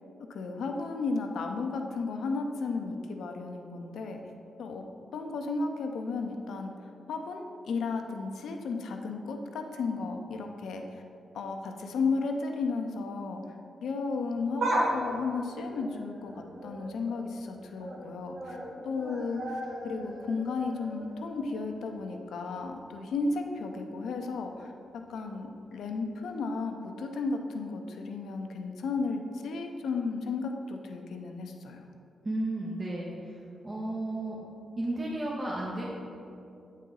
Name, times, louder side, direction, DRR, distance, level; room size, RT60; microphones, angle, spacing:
voice 1, 0.3-4.2 4.6-4.8 5.1-6.7 7.1-11.0 11.3-13.4 13.8-18.6 18.8-24.7 25.1-31.8, left 4 dB, 75° left, 4 dB, 0.5 m, -34 dB
sound 1, 14.3-17.2 17.6-18.0 18.3-22.3 22.6-22.7 23.7-23.8, right 1 dB, 65° right, 1.2 m, -36 dB
voice 2, 32.2-33.4 33.6-34.4 34.8-35.8, right 1 dB, 40° right, -5 dB, 1.0 m, -33 dB
8.1 x 4.2 x 3.8 m, 2.6 s
supercardioid pair, 45°, 0 cm